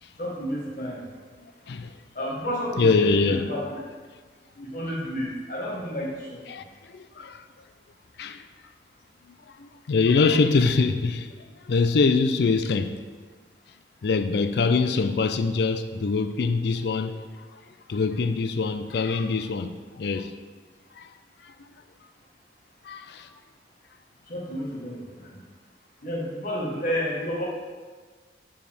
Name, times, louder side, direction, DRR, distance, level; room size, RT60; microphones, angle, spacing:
voice 1, 0.2-1.0 2.1-3.8 4.6-6.4 24.3-25.3 26.0-27.5, equal, 45° left, 1.6 m, -31 dB
voice 2, 2.8-3.5 4.6-4.7 6.5-7.5 8.2-8.5 9.6-11.3 11.6-13.0 14.0-17.6 17.9-19.7 20.0-20.3 21.0-21.1 21.4-21.5 22.8-23.3, left 4 dB, 65° left, 0.4 m, -24 dB
9.1 x 4.8 x 3.5 m
head